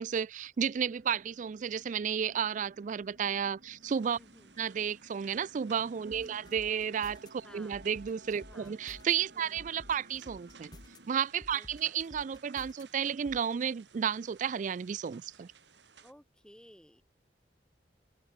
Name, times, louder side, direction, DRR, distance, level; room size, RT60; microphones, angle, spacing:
voice 1, 0.0-4.2 4.6-10.7 11.1-15.5, right 7 dB, 45° right, 0.4 m, -32 dB
sound 1, 0.8-11.1, right 2 dB, 65° right, 7.5 m, -57 dB
sound 2, 3.8-16.1, right 6 dB, 85° right, 3.2 m, -60 dB
voice 2, 4.2-4.6 6.1-6.5 7.4-7.8 8.4-8.8 9.3-9.6 11.5-12.0 16.0-17.0, equal, 5° left, 7.4 m, -57 dB
sound 3, 6.1-7.3 7.7-9.1 9.6-11.0 11.4-12.8 13.3-13.4, left 1 dB, 25° left, 0.8 m, -52 dB
head